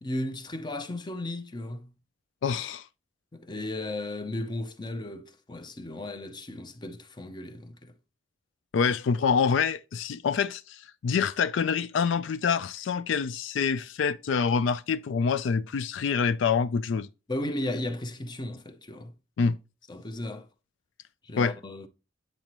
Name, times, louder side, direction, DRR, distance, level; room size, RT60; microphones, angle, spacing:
voice 1, 0.0-1.9 3.3-7.9 17.3-19.1 19.9-20.5 21.2-21.9, left 1 dB, 20° left, 0.6 m, -35 dB
voice 2, 2.4-2.8 8.7-17.1 19.4-19.6 21.4-21.5, left 6 dB, 65° left, 0.4 m, -26 dB
8.9 x 4.0 x 3.0 m
head